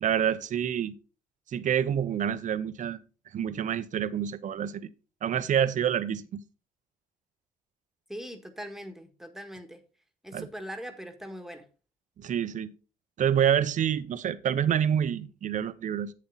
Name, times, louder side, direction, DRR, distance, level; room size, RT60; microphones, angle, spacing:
voice 1, 0.0-0.9 1.5-3.0 3.3-4.8 5.2-6.4 10.3-10.5 12.2-12.7 13.2-16.1, right 9 dB, 55° right, 0.8 m, -27 dB
voice 2, 8.1-9.8 10.2-11.6, equal, ahead, 1.6 m, -41 dB
8.5 x 7.5 x 3.9 m
cardioid pair, 80°, 15 cm